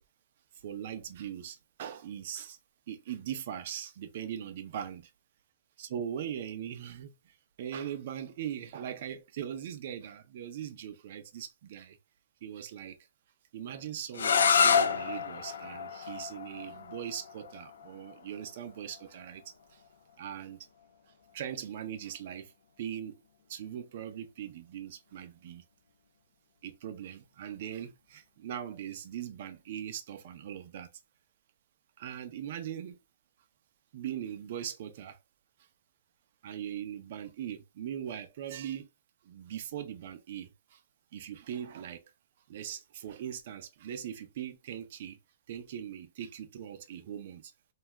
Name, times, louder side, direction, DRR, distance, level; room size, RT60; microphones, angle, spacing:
voice 1, 0.6-2.6 2.9-5.1 5.8-12.0 12.4-13.0 13.5-19.4 19.7-19.8 20.2-20.7 21.3-22.5 22.8-23.2 23.5-25.6 26.6-30.9 32.0-33.0 33.9-35.2 36.4-38.9 39.2-40.8 41.1-42.1 42.5-45.2 45.5-47.5, right 9 dB, 40° right, 0.4 m, -40 dB
sound 1, 14.1-19.9, left 6 dB, 75° left, 0.3 m, -29 dB
2.6 x 2.3 x 3.2 m
hypercardioid pair, 175°, 0 cm